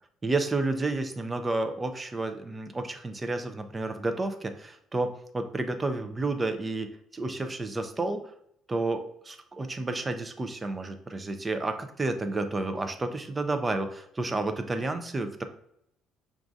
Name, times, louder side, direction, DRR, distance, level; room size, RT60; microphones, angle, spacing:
voice 1, 0.2-8.2 8.7-15.4, right 2 dB, 15° right, 7 dB, 0.4 m, -31 dB
6.1 x 2.3 x 2.6 m, 0.73 s
cardioid pair, 180°, 0 cm